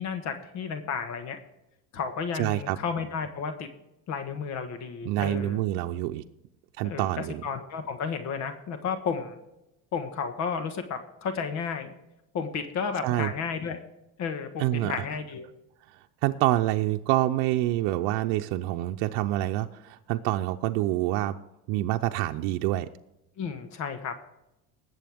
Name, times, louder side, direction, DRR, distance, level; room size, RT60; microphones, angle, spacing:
voice 1, 0.0-1.4 1.9-3.7 4.1-5.6 6.8-7.1 7.4-9.4 9.9-11.9 12.3-13.8 14.2-15.5 23.4-24.1, left 6 dB, 55° left, 8 dB, 1.4 m, -32 dB
voice 2, 2.3-2.8 5.1-6.2 6.8-7.4 13.0-13.3 14.6-14.9 15.9-21.3 21.7-22.9, right 15 dB, 90° right, 5 dB, 0.6 m, -27 dB
19.5 x 7.9 x 3.5 m, 0.89 s
cardioid pair, 130°, 33 cm